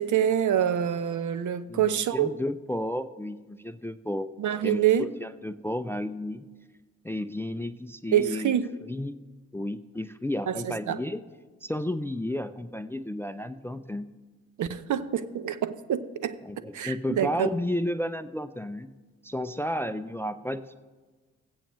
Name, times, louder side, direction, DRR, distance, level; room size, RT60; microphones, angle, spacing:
voice 1, 0.0-2.3 4.4-5.1 8.1-8.7 10.5-10.6 10.9-11.0 14.6-17.5, right 10 dB, 60° right, 0.6 m, -26 dB
voice 2, 1.7-4.3 4.6-6.5 7.0-8.6 8.8-9.2 9.5-11.2 11.6-14.1 16.4-18.9 19.2-20.7, left 1 dB, 5° left, 0.4 m, -32 dB
15.5 x 8.3 x 3.1 m
hypercardioid pair, 40°, 35 cm